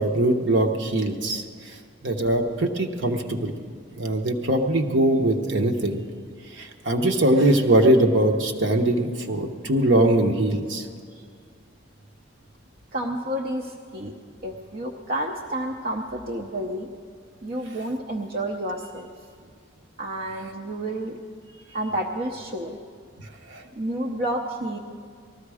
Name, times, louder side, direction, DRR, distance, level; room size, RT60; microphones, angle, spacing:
voice 1, 0.0-1.4 2.0-3.5 4.0-6.0 6.6-10.9 23.5-23.6, right 1 dB, 65° right, 4 dB, 1.1 m, -21 dB
voice 2, 12.9-14.2 14.4-16.9 17.4-19.1 20.0-21.2 21.5-22.8 23.7-24.8, right 1 dB, 50° right, 0 dB, 0.8 m, -30 dB
19.0 x 13.5 x 4.9 m, 2.1 s
head